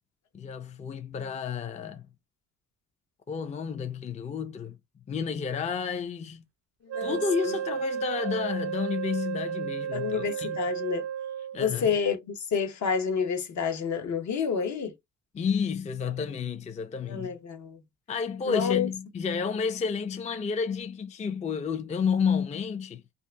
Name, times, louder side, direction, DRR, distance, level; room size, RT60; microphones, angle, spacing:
voice 1, 0.3-2.1 3.3-4.8 5.1-6.4 7.0-10.6 11.5-11.9 15.3-17.4 18.1-23.0, left 6 dB, 25° left, 0.4 m, -31 dB
voice 2, 6.8-7.6 9.9-11.1 11.6-14.9 17.1-17.8 18.4-18.9, left 6 dB, 65° left, 1.0 m, -29 dB
Wind instrument woodwind instrument, 6.9-11.6, right 9 dB, 55° right, 0.4 m, -33 dB
2.8 x 2.5 x 3.2 m
cardioid pair, 90°, 30 cm